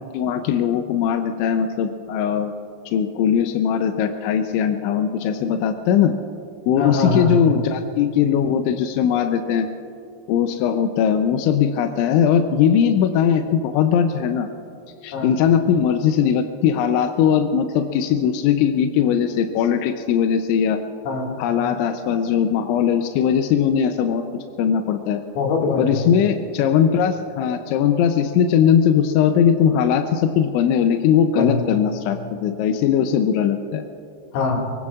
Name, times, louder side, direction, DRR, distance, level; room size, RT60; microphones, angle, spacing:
voice 1, 0.1-2.5 2.9-6.1 6.7-9.7 10.3-14.5 15.0-20.8 21.4-24.2 24.6-25.2 25.8-33.8, left 8 dB, 80° left, 6 dB, 2.7 m, -19 dB
voice 2, 6.8-7.4 15.1-15.4 21.0-21.4 25.4-26.1 31.4-31.7 34.3-34.6, left 3 dB, 60° left, -1 dB, 4.0 m, -23 dB
24.0 x 23.0 x 2.4 m, 2.7 s
omnidirectional pair, 5.9 m